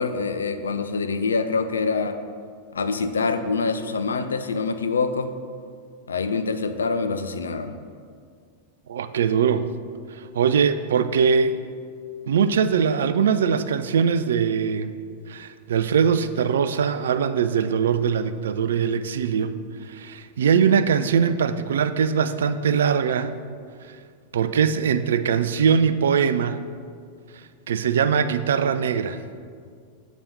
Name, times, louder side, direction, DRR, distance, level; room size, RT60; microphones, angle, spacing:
voice 1, 0.0-2.2 2.7-5.3 6.1-7.8, left 4 dB, 70° left, 9 dB, 0.4 m, -25 dB
voice 2, 8.9-9.7 10.3-11.6 12.3-14.9 15.3-19.6 19.9-23.4 23.9-24.0 24.3-26.6 27.7-29.2, right 7 dB, 65° right, 11 dB, 0.3 m, -21 dB
7.0 x 4.1 x 5.2 m, 2.1 s
figure-of-eight pair, 90°, 0 cm